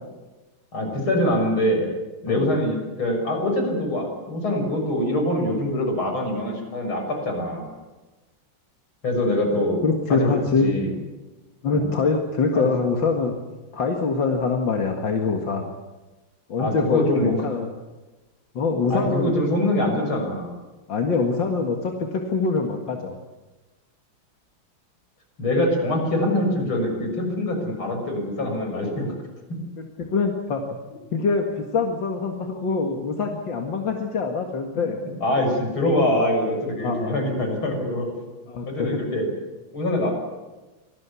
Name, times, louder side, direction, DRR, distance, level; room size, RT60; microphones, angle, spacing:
voice 1, 0.7-1.9 2.2-7.7 9.0-9.8 10.1-10.3 10.6-10.9 11.7-11.9 12.6-12.7 16.6-17.4 18.9-20.5 25.4-29.1 35.2-38.1 38.7-39.2 39.7-40.1, left 1 dB, 80° left, 3 dB, 6.9 m, -24 dB
voice 2, 9.8-10.7 11.6-13.4 13.7-15.7 16.5-17.7 18.5-19.4 20.9-23.2 30.0-30.6 31.1-31.5 31.7-35.0 36.8-37.2 37.8-37.9 38.5-39.0, left 4 dB, 65° left, 2 dB, 2.5 m, -24 dB
26.0 x 19.0 x 8.4 m, 1.2 s
omnidirectional pair, 2.2 m